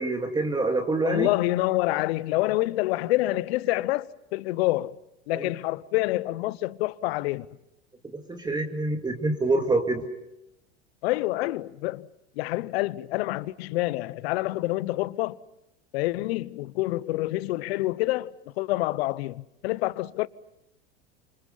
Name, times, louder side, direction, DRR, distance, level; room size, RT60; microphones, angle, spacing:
voice 1, 0.0-1.3 5.3-5.5 8.1-10.1, right 2 dB, 10° right, 2.3 m, -26 dB
voice 2, 1.0-4.9 5.3-7.5 11.0-12.1 12.4-15.4 15.9-20.3, left 18 dB, 65° left, 0.9 m, -27 dB
29.0 x 26.0 x 5.6 m
hypercardioid pair, 100°, 34 cm